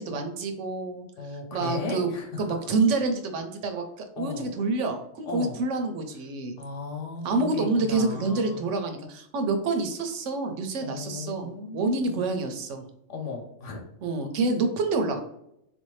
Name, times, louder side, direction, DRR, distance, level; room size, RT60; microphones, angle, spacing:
voice 1, 0.0-1.1 1.5-2.1 2.4-3.8 4.2-6.6 7.2-12.8 14.0-15.2, right 3 dB, 80° right, 5 dB, 1.0 m, -27 dB
voice 2, 1.2-2.7 4.2-4.5 5.3-5.6 6.6-8.7 10.8-12.3 13.1-13.9, left 3 dB, 80° left, 2 dB, 1.2 m, -36 dB
3.6 x 2.6 x 3.1 m, 0.79 s
omnidirectional pair, 1.2 m